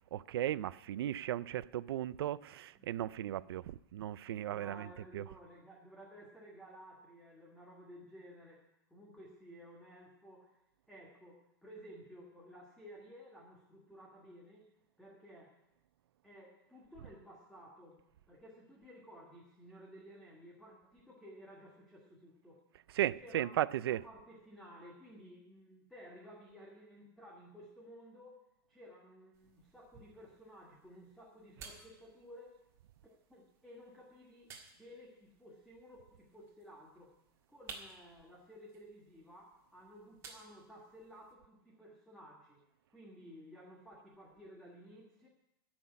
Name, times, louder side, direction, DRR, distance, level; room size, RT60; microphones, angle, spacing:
voice 1, 0.0-5.3 22.9-24.1, right 12 dB, 80° right, 0.4 m, -36 dB
voice 2, 2.8-3.6 4.2-8.6 8.9-10.6 10.9-14.7 15.0-15.5 16.2-18.0 18.3-22.6 23.2-23.5 23.9-28.4 28.7-32.6 33.0-37.1 37.5-42.6 42.9-45.3, equal, ahead, 1.5 m, -55 dB
sound 1, 29.3-41.3, right 5 dB, 25° right, 1.7 m, -57 dB
13.5 x 6.1 x 9.6 m
supercardioid pair, 170°, 13 cm